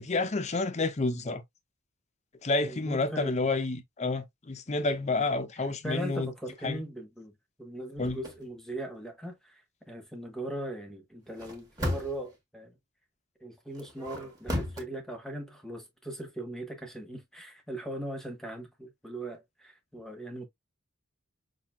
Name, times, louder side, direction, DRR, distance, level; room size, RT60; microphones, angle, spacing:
voice 1, 0.0-1.4 2.4-6.3 6.6-6.8 8.0-8.2, left 3 dB, 30° left, 0.6 m, -29 dB
voice 2, 2.6-3.4 5.8-7.3 7.6-9.6 9.9-12.7 13.4-20.5, right 1 dB, ahead, 1.0 m, -39 dB
sound 1, 8.0-8.4 11.3-12.3 13.7-14.9, left 1 dB, 15° right, 1.2 m, -34 dB
5.7 x 2.7 x 2.3 m
head